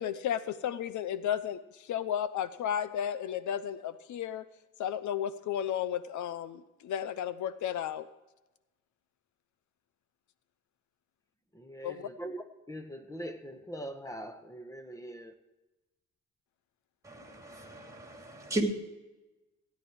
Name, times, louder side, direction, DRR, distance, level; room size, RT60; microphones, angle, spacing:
voice 1, 0.0-1.6 1.9-4.4 4.8-8.1 11.8-12.1, left 9 dB, 75° left, 0.8 m, -33 dB
voice 2, 11.5-15.3, right 1 dB, 10° left, 1.5 m, -42 dB
voice 3, 17.0-18.6, right 1 dB, 10° right, 2.8 m, -36 dB
16.0 x 9.4 x 4.7 m
cardioid pair, 90°, 30 cm